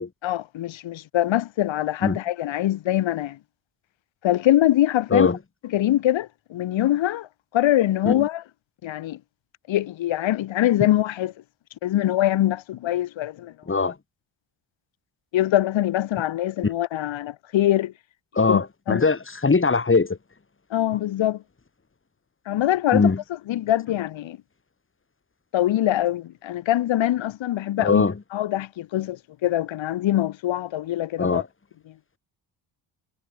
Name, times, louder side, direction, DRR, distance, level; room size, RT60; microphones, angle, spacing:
voice 1, 0.2-3.4 4.2-5.3 5.7-7.3 7.5-8.4 8.8-9.2 9.7-11.3 11.8-13.5 15.3-17.9 18.5-18.6 18.9-19.1 20.7-21.4 22.5-23.1 23.5-24.4 25.5-28.1 28.3-31.4, left 13 dB, 75° left, 3.9 m, -23 dB
voice 2, 18.4-20.2 22.9-23.2 27.8-28.1 31.2-31.5, left 4 dB, 25° left, 5.6 m, -21 dB
cardioid pair, 85°, 46 cm